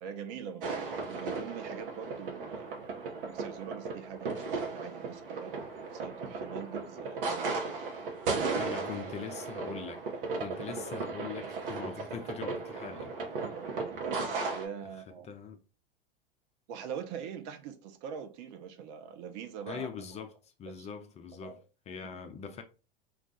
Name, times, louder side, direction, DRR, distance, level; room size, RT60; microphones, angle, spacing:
voice 1, 0.0-7.6 12.0-12.1 13.5-15.3 16.7-19.9 20.7-20.9 21.4-21.6 22.0-22.1, right 7 dB, 50° right, 0.6 m, -43 dB
sound 1, 0.6-14.7, right 4 dB, 65° right, 0.9 m, -36 dB
voice 2, 8.6-10.0 10.4-13.5 14.8-15.0 15.2-15.6 19.7-21.6 21.9-22.6, left 6 dB, 25° left, 0.4 m, -42 dB
2.4 x 2.3 x 3.8 m
hypercardioid pair, 90°, 29 cm